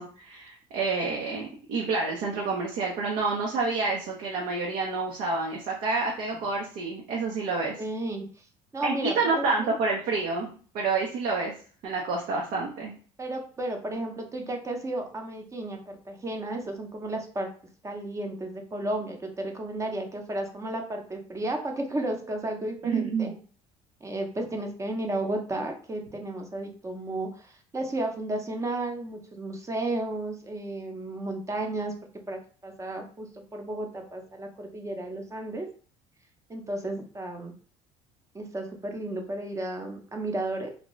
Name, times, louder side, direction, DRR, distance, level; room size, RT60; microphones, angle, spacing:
voice 1, 0.0-7.8 8.8-10.5 10.7-11.5 11.8-12.9 22.8-23.3, right 4 dB, 65° right, -1 dB, 0.7 m, -28 dB
voice 2, 7.8-8.3 8.7-9.7 13.2-17.5 17.8-23.3 24.0-31.9 32.3-35.7 36.5-37.5 38.3-40.7, right 1 dB, 20° right, 3 dB, 0.7 m, -33 dB
2.6 x 2.2 x 3.0 m, 0.42 s
supercardioid pair, 85°, 14 cm